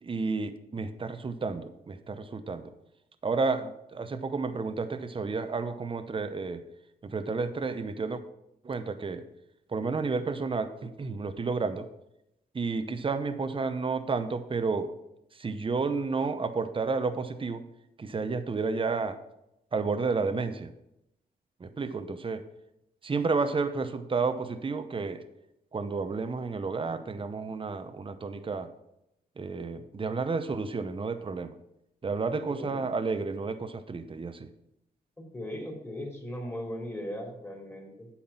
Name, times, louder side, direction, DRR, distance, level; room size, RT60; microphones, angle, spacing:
voice 1, 0.0-2.7 3.2-6.6 7.0-8.2 8.6-9.2 9.7-11.9 12.5-14.9 15.3-17.7 18.0-19.2 19.7-20.7 21.6-22.4 23.0-25.2 25.7-28.7 29.4-31.5 32.0-34.5, right 4 dB, 30° right, 10 dB, 0.8 m, -31 dB
voice 2, 32.5-32.9 35.3-38.1, equal, 15° left, 0 dB, 3.1 m, -38 dB
8.7 x 5.8 x 5.7 m, 0.84 s
cardioid pair, 70°, 17 cm